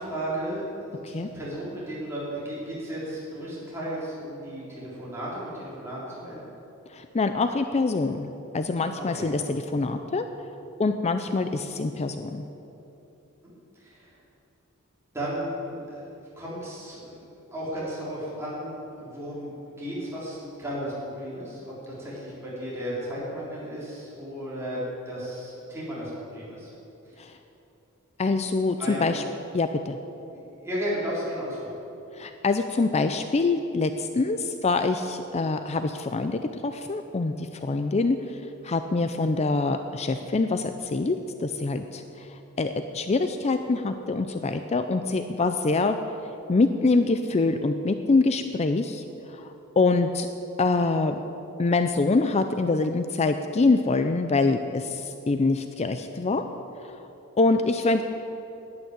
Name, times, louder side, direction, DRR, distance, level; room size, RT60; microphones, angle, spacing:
voice 1, 0.0-6.4 9.0-9.3 13.7-14.2 15.1-16.0 16.4-17.2 17.5-19.5 19.8-26.7 27.1-27.3 28.8-29.1 30.6-31.7, equal, 10° right, -8 dB, 3.7 m, -34 dB
voice 2, 6.9-10.3 10.8-12.5 27.2-27.3 28.2-29.2 29.5-30.0 32.2-38.2 38.6-42.3 42.6-46.0 46.5-49.0 49.3-50.3 50.6-51.2 51.6-56.4 57.4-58.0, left 3 dB, 30° left, 8 dB, 0.4 m, -25 dB
11.5 x 8.9 x 8.1 m, 3.0 s
head